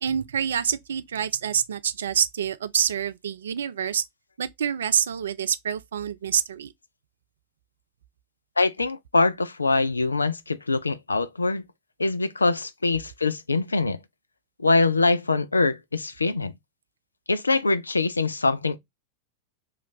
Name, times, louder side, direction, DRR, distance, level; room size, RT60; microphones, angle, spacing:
voice 1, 0.0-4.0 4.4-6.7, right 8 dB, 65° right, 0.3 m, -26 dB
voice 2, 8.6-11.6 12.0-14.0 14.6-16.5 17.3-18.8, left 3 dB, 80° left, 0.3 m, -23 dB
3.1 x 2.4 x 3.8 m
figure-of-eight pair, 90°, 0 cm